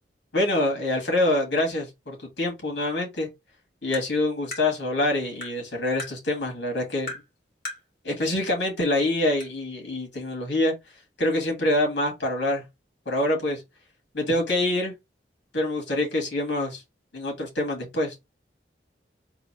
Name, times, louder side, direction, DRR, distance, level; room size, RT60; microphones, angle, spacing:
voice 1, 0.3-3.3 3.8-7.1 8.0-10.7 11.2-12.6 13.1-13.6 14.1-14.9 15.5-16.8 17.1-18.2, left 1 dB, 75° left, 2.1 m, -25 dB
Tap, 3.9-4.1 4.5-4.7 5.4-5.6 6.0-6.1 7.1-7.3 7.7-7.8 8.8-8.9 9.4-9.5, left 2 dB, 50° left, 2.4 m, -36 dB
3.9 x 2.5 x 4.5 m
head